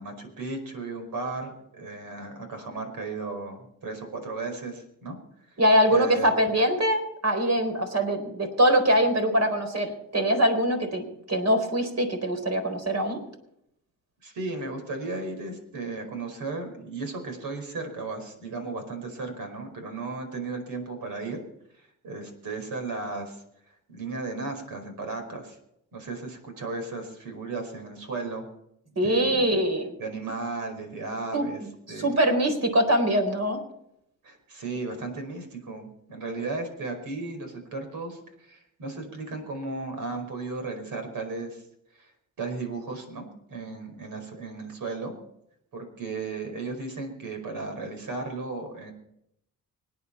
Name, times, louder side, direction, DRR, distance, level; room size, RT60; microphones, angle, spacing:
voice 1, 0.0-5.2 5.9-6.3 14.2-21.4 21.8-23.4 23.9-25.6 25.9-28.5 29.0-29.5 30.0-31.6 31.9-32.1 34.2-41.6 42.0-42.1 42.4-45.1 45.7-48.9, right 3 dB, 80° right, 4 dB, 5.1 m, -35 dB
voice 2, 5.6-13.2 29.0-30.0 31.3-33.6, equal, 50° right, 5 dB, 4.2 m, -23 dB
25.5 x 9.6 x 4.4 m, 0.77 s
cardioid pair, 85°, 33 cm